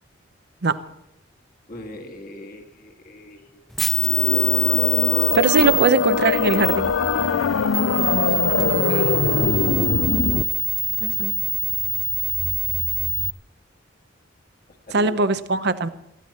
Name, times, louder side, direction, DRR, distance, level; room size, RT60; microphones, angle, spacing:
voice 1, 1.7-3.7 5.6-6.0 8.3-9.7 13.1-13.2 14.9-15.3, left 2 dB, 45° left, 3 dB, 1.8 m, -39 dB
sound 1, 3.7-13.3, right 2 dB, ahead, 0.5 m, -25 dB
sound 2, 3.9-10.4, left 5 dB, 80° left, 0.5 m, -22 dB
voice 2, 5.3-6.9 11.0-11.3 14.9-15.9, right 3 dB, 55° right, 12 dB, 0.8 m, -20 dB
20.0 x 14.5 x 4.2 m, 0.84 s
head